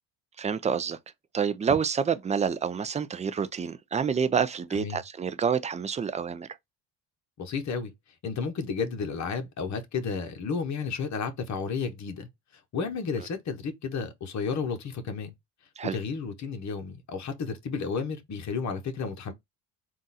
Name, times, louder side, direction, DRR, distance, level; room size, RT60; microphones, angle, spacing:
voice 1, 0.4-1.0 1.3-6.5 15.8-16.0, right 6 dB, 20° right, 0.4 m, -28 dB
voice 2, 7.4-7.9 8.2-12.3 12.7-15.3 15.9-19.3, left 5 dB, 45° left, 1.0 m, -32 dB
3.8 x 2.5 x 4.0 m
cardioid pair, 100°, 41 cm